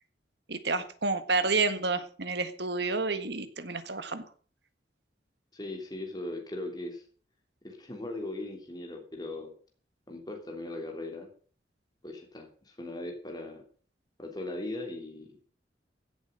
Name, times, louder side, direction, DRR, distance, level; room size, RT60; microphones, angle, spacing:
voice 1, 0.5-4.2, right 3 dB, 65° right, 11 dB, 1.7 m, -30 dB
voice 2, 5.5-7.0 7.6-9.5 10.1-11.3 12.0-13.6 14.2-15.3, left 2 dB, 20° left, 3 dB, 3.1 m, -39 dB
16.5 x 7.9 x 6.6 m, 0.43 s
head